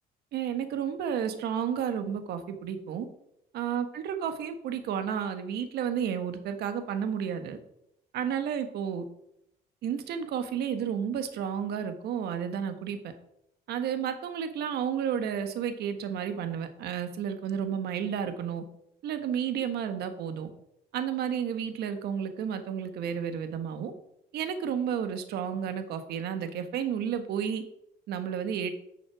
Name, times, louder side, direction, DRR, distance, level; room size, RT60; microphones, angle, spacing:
voice 1, 0.3-3.1 3.5-7.6 8.1-9.0 9.8-13.1 13.7-18.6 19.0-20.5 20.9-23.9 24.3-27.6 28.1-28.7, right 8 dB, 75° right, 8 dB, 1.4 m, -31 dB
10.5 x 6.3 x 4.8 m, 0.77 s
cardioid pair, 110°, 17 cm